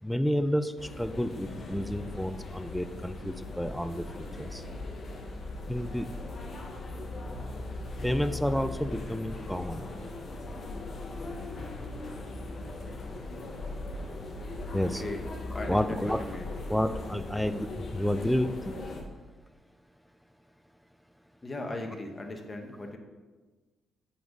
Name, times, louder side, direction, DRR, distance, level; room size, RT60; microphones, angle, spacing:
voice 1, 0.0-4.7 5.7-6.1 8.0-9.9 14.7-15.0 15.7-16.2 16.7-18.7, equal, ahead, 11 dB, 0.4 m, -30 dB
sound 1, 0.8-19.0, left 2 dB, 45° left, 1.3 m, -39 dB
voice 2, 14.8-15.2 15.5-16.5 21.4-23.0, left 2 dB, 25° left, 3 dB, 1.1 m, -38 dB
7.7 x 4.0 x 5.3 m, 1.3 s
cardioid pair, 90°, 0 cm